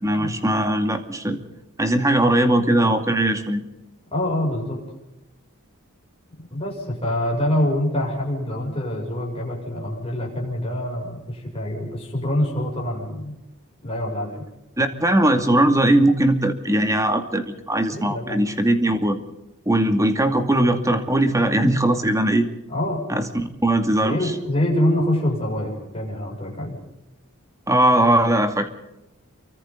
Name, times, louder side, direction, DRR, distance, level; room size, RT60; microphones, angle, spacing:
voice 1, 0.0-1.4 1.8-3.6 14.8-19.2 19.7-22.5 23.1-24.2 27.7-28.7, right 1 dB, 15° right, 6 dB, 2.4 m, -20 dB
voice 2, 4.1-4.8 6.5-13.3 13.8-14.4 17.9-18.4 21.6-21.8 22.7-23.0 24.0-26.8, left 1 dB, 25° left, -2 dB, 6.9 m, -25 dB
29.5 x 24.0 x 4.0 m, 0.93 s
head